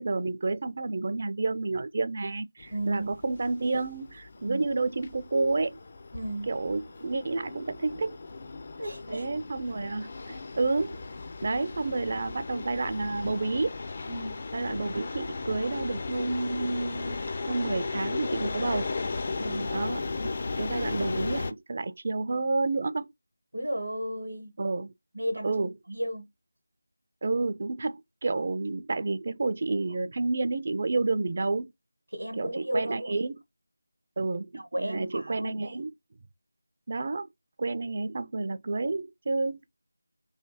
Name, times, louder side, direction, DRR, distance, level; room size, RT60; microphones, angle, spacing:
voice 1, 0.0-5.8 6.5-8.2 9.1-11.0 11.4-13.8 14.5-17.2 17.5-18.9 19.7-20.0 20.5-23.1 24.6-24.9 25.4-25.7 27.2-31.7 32.4-33.4 34.2-35.9 36.9-37.3 37.6-39.7, right 3 dB, 40° right, 0.4 m, -30 dB
sound 1, 2.6-21.5, left 3 dB, 35° left, 0.4 m, -36 dB
voice 2, 2.7-3.1 4.4-4.7 6.1-6.5 8.8-9.3 14.1-14.4 19.4-19.8 23.5-24.6 25.1-26.3 32.1-33.1 34.5-35.8, right 1 dB, 75° right, 0.9 m, -34 dB
3.2 x 2.7 x 2.8 m
figure-of-eight pair, 165°, 0 cm